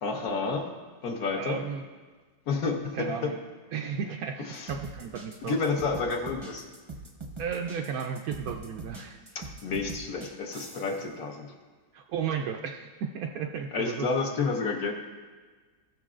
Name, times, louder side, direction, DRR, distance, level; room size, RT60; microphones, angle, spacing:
voice 1, 0.0-0.7 1.0-1.6 2.5-3.1 4.5-4.7 5.4-6.7 9.3-11.5 13.7-14.9, left 4 dB, 60° left, 2 dB, 1.2 m, -30 dB
voice 2, 1.4-1.8 2.9-3.4 3.7-5.5 7.4-9.2 11.9-14.1, right 7 dB, 70° right, 2 dB, 0.8 m, -34 dB
sound 1, 4.5-11.0, right 2 dB, 25° right, 0.6 m, -42 dB
16.0 x 6.6 x 2.4 m, 1.4 s
omnidirectional pair, 2.0 m